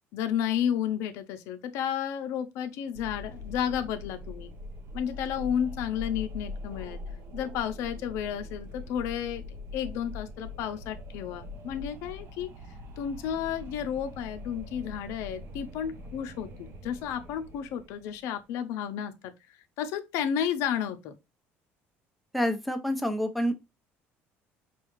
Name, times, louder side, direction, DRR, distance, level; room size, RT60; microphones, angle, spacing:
voice 1, 0.1-4.5 4.9-7.0 7.3-9.4 9.7-12.5 13.0-19.3 19.8-21.1, left 9 dB, 75° left, 0.7 m, -32 dB
Wind, 2.9-18.3, left 2 dB, 55° right, 0.7 m, -42 dB
voice 2, 22.3-23.6, equal, ahead, 0.7 m, -28 dB
5.4 x 2.4 x 3.0 m
cardioid pair, 120°, 5 cm